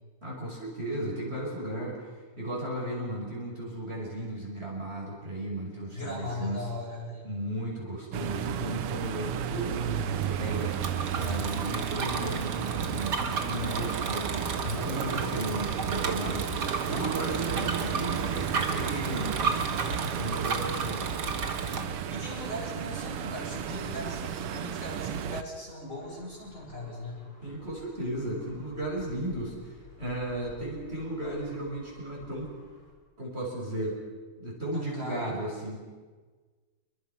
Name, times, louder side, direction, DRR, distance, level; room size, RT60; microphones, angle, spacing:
voice 1, 0.2-2.1 2.4-6.7 7.2-10.8 11.1-16.5 16.9-19.4 20.2-21.1 21.7-22.0 27.4-32.5 33.2-34.0 34.4-35.8, right 1 dB, 25° right, -3 dB, 6.4 m, -35 dB
voice 2, 5.9-7.3 22.1-27.2 34.7-35.3, left 1 dB, 35° left, -4 dB, 8.3 m, -38 dB
sound 1, 8.1-25.4, right 8 dB, 90° right, 2.0 m, -33 dB
Bicycle, 10.1-21.8, right 4 dB, 50° right, 2.4 m, -34 dB
sound 2, 25.8-32.9, left 1 dB, 90° left, 5.9 m, -52 dB
27.5 x 23.5 x 5.9 m, 1.4 s
omnidirectional pair, 2.4 m